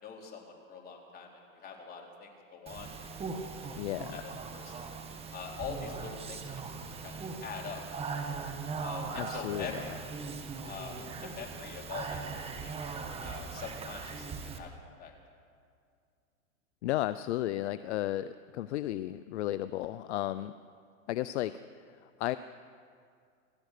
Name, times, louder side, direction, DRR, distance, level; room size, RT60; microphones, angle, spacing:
voice 1, 0.0-1.3 1.5-2.9 3.4-3.8 4.1-4.8 5.3-6.4 7.0-8.2 8.8-10.0 10.6-11.0 11.2-12.9 13.2-14.7 15.0-15.1, left 5 dB, 20° left, 0 dB, 4.0 m, -44 dB
Speech, 2.7-14.6, right 4 dB, 15° right, 1.7 m, -40 dB
voice 2, 3.8-4.2 9.2-10.0 16.8-20.5 21.1-21.6 22.2-22.4, left 14 dB, 55° left, 13 dB, 0.7 m, -33 dB
27.5 x 15.5 x 6.7 m, 2.3 s
hypercardioid pair, 140°, 41 cm